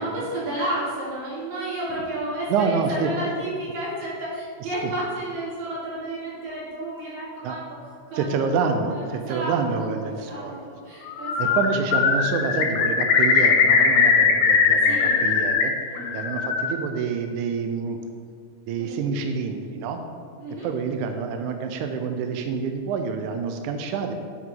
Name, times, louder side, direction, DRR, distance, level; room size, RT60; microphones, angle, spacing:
voice 1, 0.0-7.7 8.1-8.3 9.3-11.6 14.8-15.2 15.9-16.2 18.8-18.9 20.4-20.7, right 1 dB, 55° right, -7 dB, 3.4 m, -31 dB
voice 2, 2.5-3.1 4.8-4.9 7.4-7.6 8.1-10.7 11.4-15.7 16.1-18.0 18.7-20.0 20.6-24.1, right 5 dB, 85° right, 6 dB, 1.7 m, -27 dB
Bird, 11.1-11.7 11.9-15.6 16.0-16.8, left 5 dB, 85° left, 1.5 m, -20 dB
11.5 x 4.8 x 3.8 m, 2.1 s
omnidirectional pair, 4.1 m